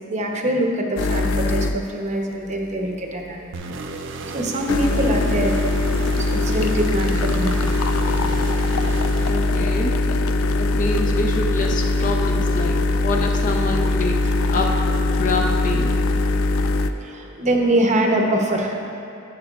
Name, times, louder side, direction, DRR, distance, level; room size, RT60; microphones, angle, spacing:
voice 1, 0.1-3.5 4.0-5.7 6.0-7.7 8.0-8.4 9.1-9.7 10.1-10.9 11.9-12.0 12.7-12.9 16.3-16.5 16.8-18.9, right 1 dB, 35° right, 1 dB, 0.8 m, -25 dB
sound 1, 1.0-1.9 4.7-16.9, left 2 dB, 75° left, 0.4 m, -21 dB
sound 2, 3.5-10.0, right 3 dB, 60° right, 0.5 m, -33 dB
voice 2, 9.3-9.9 10.6-14.2 14.5-14.7 15.2-16.0, left 2 dB, 40° left, 0 dB, 0.8 m, -26 dB
10.5 x 9.1 x 2.4 m, 2.7 s
head